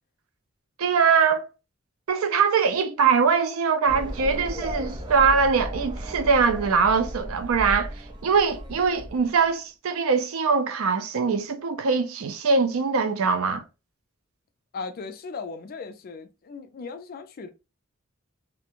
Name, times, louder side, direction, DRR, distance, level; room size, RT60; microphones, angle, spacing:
voice 1, 0.8-1.4 2.1-7.9 8.2-13.6, right 5 dB, 90° right, 0.5 m, -22 dB
sound 1, 3.9-9.5, equal, 20° right, 0.5 m, -35 dB
voice 2, 14.7-17.5, left 4 dB, 45° left, 0.4 m, -37 dB
2.4 x 2.1 x 2.9 m
head